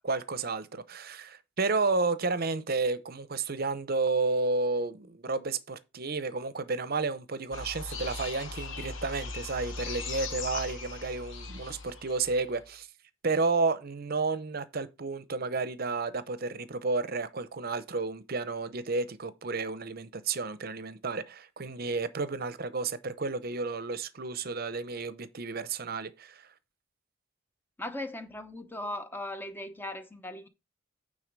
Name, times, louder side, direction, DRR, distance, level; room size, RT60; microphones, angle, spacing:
voice 1, 0.0-12.9 13.2-26.5, right 3 dB, 50° right, 0.7 m, -31 dB
sound 1, 7.5-12.7, left 4 dB, 70° left, 1.3 m, -39 dB
voice 2, 27.8-30.5, left 1 dB, 10° left, 0.8 m, -38 dB
9.1 x 3.9 x 5.2 m
head